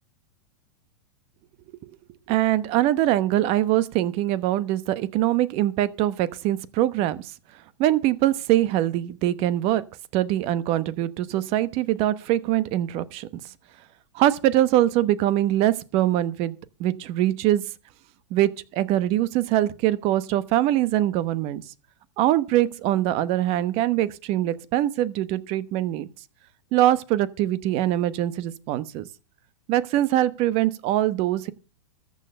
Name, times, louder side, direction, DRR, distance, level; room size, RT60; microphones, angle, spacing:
voice 1, 2.3-7.3 7.8-9.8 10.1-13.3 14.1-17.6 18.3-21.6 22.2-26.1 26.7-29.0 29.7-31.5, right 13 dB, 40° right, 1.0 m, -23 dB
14.0 x 6.6 x 6.7 m
hypercardioid pair, 130°, 15 cm